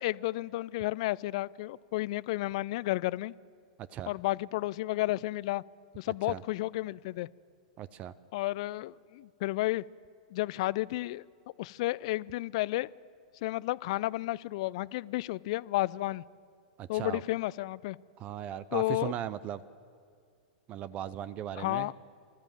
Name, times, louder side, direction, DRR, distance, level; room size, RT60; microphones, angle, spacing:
voice 1, 0.0-3.3 4.1-5.6 6.0-7.3 8.3-9.8 10.3-11.2 11.6-12.9 13.4-16.2 16.9-18.0 18.7-19.1 21.6-21.9, left 18 dB, 50° left, 21 dB, 0.4 m, -32 dB
voice 2, 7.8-8.1 16.8-17.2 18.2-19.6 20.7-21.9, right 11 dB, 35° right, 17 dB, 0.6 m, -37 dB
26.5 x 13.0 x 7.5 m, 2.2 s
figure-of-eight pair, 100°, 4 cm